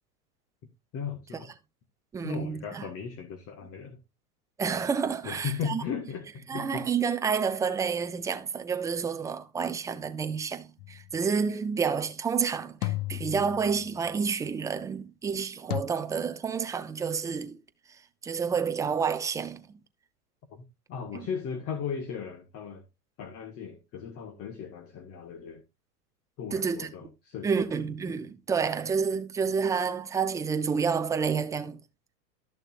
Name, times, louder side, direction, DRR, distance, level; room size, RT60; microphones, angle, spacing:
voice 1, 0.9-1.5 2.2-4.0 5.2-6.8 20.5-22.8 23.2-25.6 26.4-27.8 28.0-28.1, left 7 dB, 30° left, 1.5 m, -37 dB
voice 2, 2.1-2.9 4.6-5.8 6.5-17.6 18.2-19.6 21.1-21.3 26.5-26.9 27.4-31.8, right 6 dB, 10° right, 0.4 m, -29 dB
sound 1, 10.8-11.2 12.8-14.0 15.7-15.8, left 16 dB, 80° left, 0.7 m, -34 dB
13.0 x 6.6 x 2.4 m
supercardioid pair, 135°, 46 cm